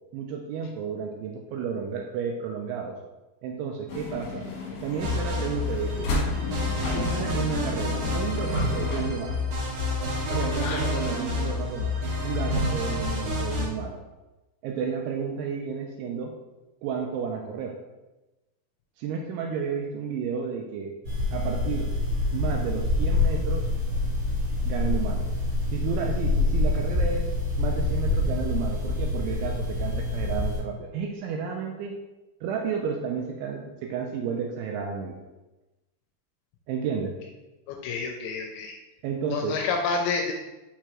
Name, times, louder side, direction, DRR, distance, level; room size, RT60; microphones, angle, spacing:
voice 1, 0.1-3.0 3.4-4.5 4.8-6.1 6.9-9.4 10.3-11.9 12.2-14.0 14.6-16.3 16.8-17.8 19.0-20.9 21.3-21.9 22.3-23.7 24.6-25.3 25.7-32.0 32.4-35.2 36.7-37.1 39.0-39.6, right 6 dB, 85° right, 2 dB, 2.8 m, -32 dB
sound 1, 3.9-9.1, left 2 dB, 65° left, 2.3 m, -34 dB
sound 2, 5.0-13.6, left 2 dB, 65° right, 2.2 m, -28 dB
voice 2, 10.4-11.0 37.7-38.8 39.3-40.3, left 4 dB, 85° left, 2 dB, 2.8 m, -29 dB
sound 3, 21.0-30.6, left 2 dB, 45° right, 2.4 m, -26 dB
6.5 x 5.8 x 3.0 m, 1.1 s
omnidirectional pair, 5.8 m